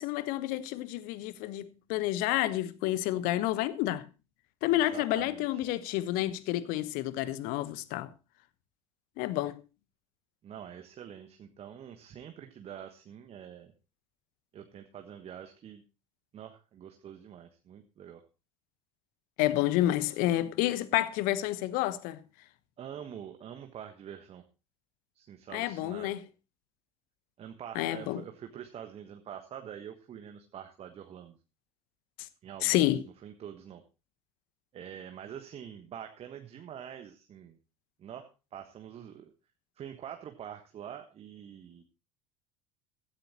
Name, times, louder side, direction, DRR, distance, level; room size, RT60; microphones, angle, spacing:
voice 1, 0.0-4.1 4.6-8.1 9.2-9.6 19.4-22.2 25.5-26.2 27.7-28.2 32.6-33.0, left 14 dB, 50° left, 1.1 m, -29 dB
voice 2, 4.7-5.6 10.4-13.7 14.5-15.8 16.3-18.2 22.8-24.4 25.1-26.2 27.4-31.4 32.4-32.8 33.2-33.8 34.7-37.6 38.0-39.3 39.8-41.9, right 9 dB, 35° right, 1.3 m, -45 dB
16.0 x 13.0 x 2.9 m
figure-of-eight pair, 70°, 18 cm